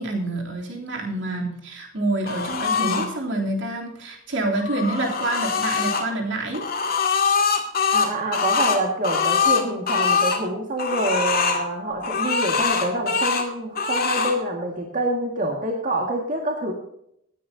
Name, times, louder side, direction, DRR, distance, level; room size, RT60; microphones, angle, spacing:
voice 1, 0.0-6.7, right 2 dB, 65° right, 0 dB, 3.4 m, -27 dB
sound 1, 2.3-3.1 4.5-6.0 6.5-10.4 10.8-11.6 12.0-13.5 13.8-14.4, left 5 dB, 50° left, 2.2 m, -23 dB
voice 2, 7.9-16.7, right 1 dB, 40° right, 0 dB, 2.0 m, -26 dB
19.0 x 10.0 x 2.8 m, 0.72 s
head